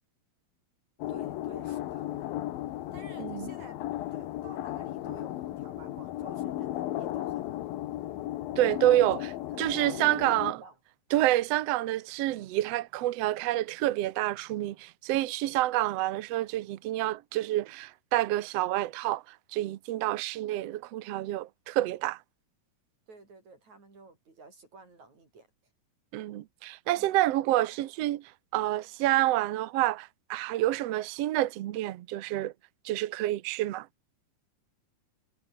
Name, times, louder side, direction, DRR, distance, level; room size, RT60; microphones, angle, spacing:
sound 1, 1.0-10.5, left 14 dB, 90° left, 3.0 m, -35 dB
voice 1, 1.1-2.1 2.9-3.8 4.1-7.5 9.5-10.8 23.1-25.5 27.0-27.2, right 3 dB, 55° right, 8.7 m, -51 dB
voice 2, 3.2-3.5 8.6-10.6 11.1-22.2 26.1-32.5 32.8-33.9, right 15 dB, 75° right, 1.5 m, -28 dB
omnidirectional pair, 4.0 m